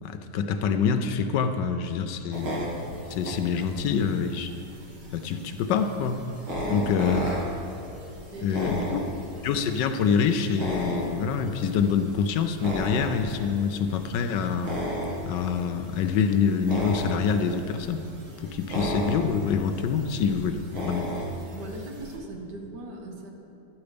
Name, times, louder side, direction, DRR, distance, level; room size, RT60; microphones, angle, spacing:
voice 1, 0.0-2.5 3.1-4.5 5.1-6.2 6.7-7.2 8.4-9.0 9.4-14.8 15.2-18.1 18.4-21.1, left 6 dB, 75° left, 8 dB, 1.2 m, -26 dB
sound 1, 2.3-22.2, equal, 90° right, 2.5 m, -35 dB
voice 2, 6.6-6.9 8.3-9.1 18.7-18.8 21.5-23.3, right 2 dB, 65° right, 1 dB, 1.7 m, -40 dB
12.0 x 8.2 x 5.1 m, 2.9 s
omnidirectional pair, 2.0 m